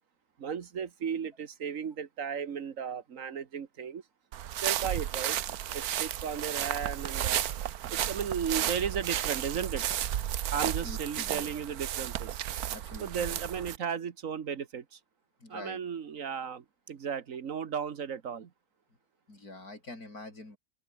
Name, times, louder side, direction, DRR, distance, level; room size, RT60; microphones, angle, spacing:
voice 1, 0.4-4.0 4.6-5.4 5.7-7.4 7.9-9.8 10.5-12.4 13.0-15.0 15.5-18.5, right 7 dB, 65° right, 1.6 m, -35 dB
sound 1, 4.3-13.8, right 11 dB, 85° right, 1.3 m, -33 dB
voice 2, 10.6-11.5 12.7-13.4 15.4-15.8 19.3-20.6, left 2 dB, 90° left, 6.6 m, -45 dB
open air
omnidirectional pair, 1.5 m